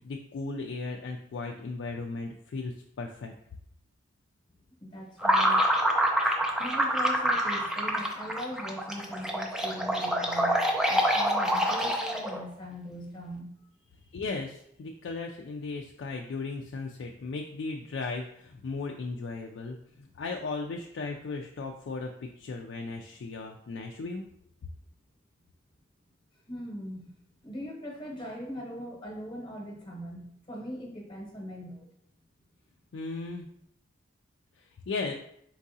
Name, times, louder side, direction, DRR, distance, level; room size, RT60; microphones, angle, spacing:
voice 1, 0.0-3.3 14.1-22.1 22.4-24.2 32.9-33.5 34.9-35.1, left 3 dB, 65° left, 2 dB, 0.3 m, -36 dB
voice 2, 4.8-5.8 6.2-6.3 6.6-10.6 10.9-13.5 26.5-27.1 27.4-31.8, equal, 25° left, -1 dB, 0.9 m, -40 dB
sound 1, 5.2-12.4, equal, 5° right, 0.4 m, -26 dB
4.5 x 3.6 x 2.7 m, 0.69 s
head